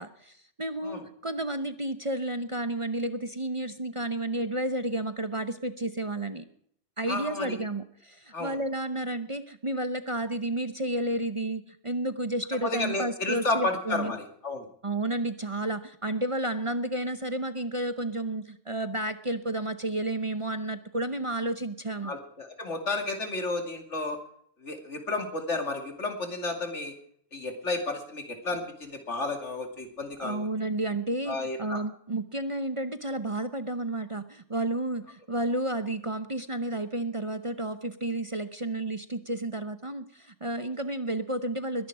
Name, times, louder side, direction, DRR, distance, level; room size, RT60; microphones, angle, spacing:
voice 1, 0.0-6.4 7.0-14.1 14.8-22.2 30.2-41.9, right 1 dB, 30° right, 10 dB, 0.8 m, -31 dB
voice 2, 7.1-7.5 8.3-8.6 12.6-14.7 22.0-24.2 24.6-26.9 27.3-30.5 31.3-31.8, left 2 dB, 80° left, 4 dB, 2.9 m, -32 dB
21.5 x 11.0 x 4.9 m, 0.66 s
omnidirectional pair, 1.2 m